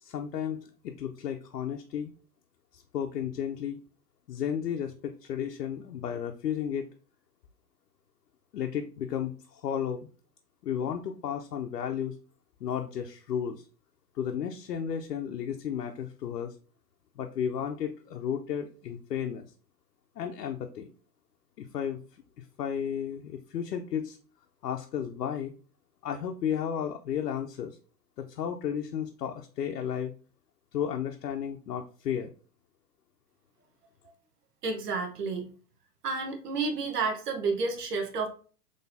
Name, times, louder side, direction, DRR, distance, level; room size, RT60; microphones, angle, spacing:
voice 1, 0.0-2.1 2.7-3.8 4.3-6.9 8.5-10.1 10.6-12.2 12.6-13.6 14.1-16.5 17.2-19.5 20.2-20.9 21.6-22.0 22.4-24.2 24.6-25.5 26.0-27.8 28.2-30.1 30.7-32.3, left 8 dB, 75° left, 4 dB, 0.6 m, -33 dB
voice 2, 34.6-35.5 36.0-38.3, right 4 dB, 70° right, 4 dB, 1.1 m, -30 dB
4.0 x 3.2 x 2.6 m, 0.39 s
figure-of-eight pair, 115°, 48 cm